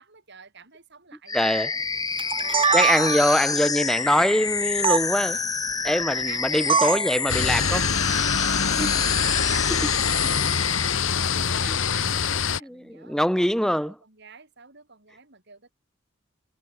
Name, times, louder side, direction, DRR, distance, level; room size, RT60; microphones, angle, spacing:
voice 1, 0.0-3.6 4.3-4.5 5.3-5.6 6.3-9.1 9.5-11.1 11.5-15.7, right 6 dB, 60° right, 7.5 m, -47 dB
sound 1, 1.3-10.9, left 5 dB, 20° left, 0.8 m, -28 dB
voice 2, 1.3-1.7 2.7-5.4 5.8-7.8 8.7-8.9 9.7-9.8 11.7-11.8 12.6-13.9, equal, 5° left, 2.3 m, -23 dB
sound 2, 2.2-3.4 4.8-5.0 6.7-7.1, right 5 dB, 25° right, 1.0 m, -22 dB
sound 3, 7.3-12.6, left 6 dB, 70° left, 1.3 m, -24 dB
head